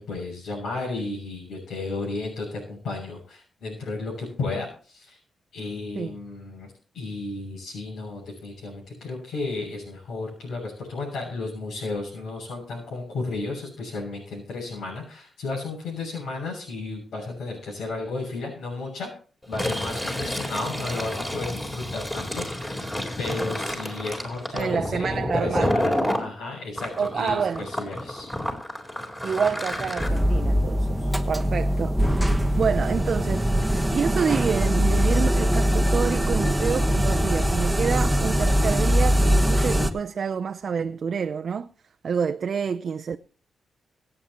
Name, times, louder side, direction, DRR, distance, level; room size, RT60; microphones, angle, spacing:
voice 1, 0.0-5.2 5.5-19.1 19.5-22.8 23.2-25.9 26.2-28.3, left 3 dB, 80° left, 6.9 m, -33 dB
Fill (with liquid), 19.4-26.2 26.8-30.1, left 1 dB, 15° left, 4.1 m, -29 dB
voice 2, 24.5-25.8 27.0-27.7 29.2-32.2 32.6-33.5 33.9-41.7 42.0-43.2, right 6 dB, 55° right, 0.6 m, -28 dB
sound 1, 30.0-39.9, equal, ahead, 1.3 m, -22 dB
25.5 x 8.9 x 3.0 m
cardioid pair, 105°, 0 cm